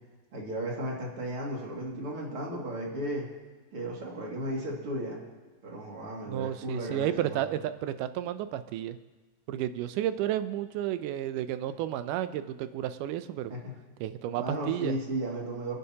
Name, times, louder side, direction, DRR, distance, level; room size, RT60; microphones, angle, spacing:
voice 1, 0.3-3.3 3.7-5.2 5.6-7.5 13.5-13.8 14.4-15.8, right 1 dB, 45° right, -3 dB, 3.0 m, -35 dB
voice 2, 6.3-9.0 9.5-13.5 14.0-15.0, right 11 dB, 85° right, 11 dB, 2.2 m, -32 dB
29.0 x 9.8 x 2.9 m, 1.3 s
omnidirectional pair, 3.6 m